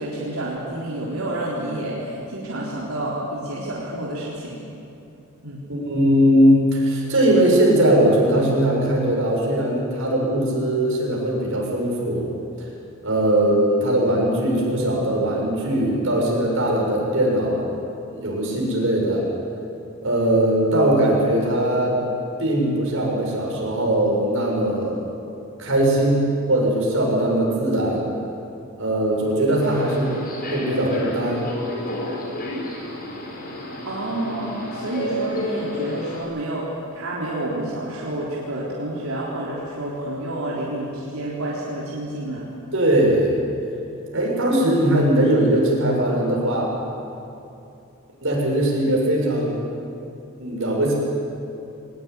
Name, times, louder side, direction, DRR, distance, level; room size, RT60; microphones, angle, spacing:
voice 1, 0.0-4.6 5.4-5.6 33.8-42.5, right 1 dB, 90° right, -5 dB, 3.9 m, -29 dB
voice 2, 5.7-12.3 13.0-17.7 18.1-19.3 20.0-22.0 22.4-25.0 25.6-28.1 28.8-30.1 30.5-31.4 42.7-43.3 44.1-46.7 48.2-49.5 50.4-50.9, right 1 dB, 65° right, -2 dB, 7.2 m, -20 dB
Subway metro underground, 29.6-36.2, left 1 dB, 45° left, 5.1 m, -31 dB
23.0 x 19.5 x 9.8 m, 2.7 s
head